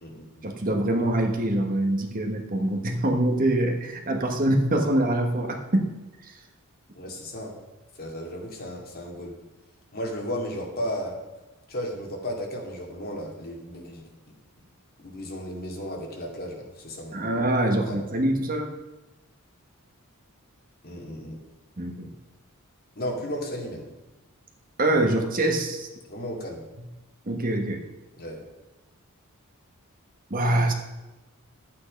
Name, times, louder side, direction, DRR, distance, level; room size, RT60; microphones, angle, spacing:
voice 1, 0.4-5.9 17.1-18.7 21.8-22.1 24.8-25.9 27.3-27.8 30.3-30.7, right 1 dB, 40° right, 4 dB, 1.3 m, -24 dB
voice 2, 6.9-7.5 8.0-9.3 9.9-11.1 11.7-14.0 15.0-17.3 17.9-18.0 20.8-21.4 23.0-23.9 26.1-26.6 28.2-28.4, equal, 45° left, 0 dB, 2.4 m, -34 dB
11.0 x 8.6 x 5.3 m, 1.1 s
head